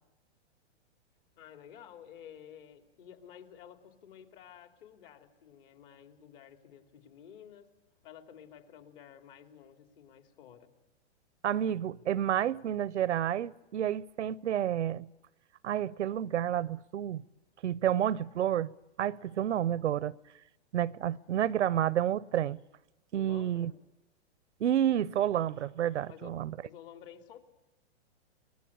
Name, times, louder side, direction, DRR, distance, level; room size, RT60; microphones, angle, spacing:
voice 1, 1.4-7.7 8.0-10.7 23.1-23.7 26.1-26.3 26.6-27.4, left 9 dB, 50° left, 2.9 m, -52 dB
voice 2, 11.4-15.1 15.6-17.2 17.6-18.7 19.0-20.1 20.7-22.6 23.1-23.7 24.6-26.5, right 10 dB, 90° right, 0.8 m, -30 dB
24.0 x 20.5 x 8.7 m
hypercardioid pair, 140°, 34 cm